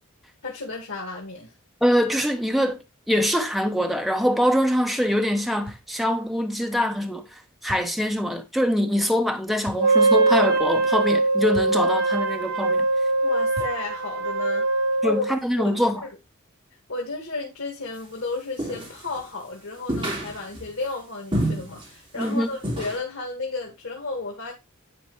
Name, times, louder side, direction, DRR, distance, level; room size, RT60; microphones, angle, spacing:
voice 1, 0.4-1.5 13.2-14.7 15.0-15.2 15.6-16.1 16.9-24.5, left 3 dB, 90° left, 1.9 m, -33 dB
voice 2, 1.8-12.8 15.0-16.1 22.2-22.5, equal, ahead, 0.8 m, -24 dB
sound 1, 5.7-5.9 7.7-8.0 9.6-9.9 11.5-11.8 13.5-13.8, right 1 dB, 70° right, 3.5 m, -38 dB
Wind instrument woodwind instrument, 9.8-15.4, right 3 dB, 90° right, 1.2 m, -22 dB
sound 2, 18.6-19.2 19.9-20.7 21.3-21.9 22.1-22.3 22.6-23.0, right 1 dB, 25° right, 2.9 m, -28 dB
10.0 x 4.3 x 3.1 m
head